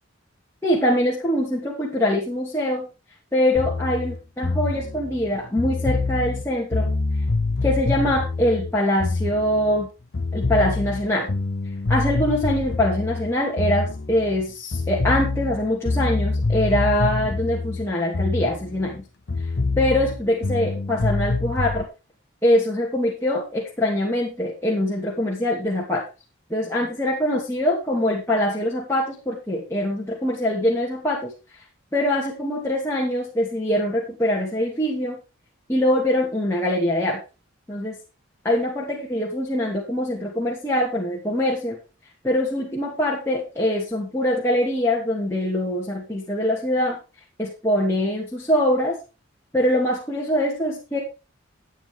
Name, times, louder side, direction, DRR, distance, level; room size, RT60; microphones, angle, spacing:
voice 1, 0.6-2.9 3.3-6.9 7.6-9.9 10.3-11.3 11.9-19.0 19.8-21.9 22.4-26.0 26.5-31.3 31.9-35.2 35.7-37.2 37.7-38.0 38.4-41.8 42.2-47.0 47.4-49.0 49.5-51.0, left 1 dB, 15° left, -5 dB, 2.7 m, -23 dB
sound 1, 3.6-9.9 10.1-14.4 14.7-19.0 19.3-21.8, left 3 dB, 55° left, 0.6 m, -26 dB
12.0 x 9.3 x 3.7 m, 0.30 s
head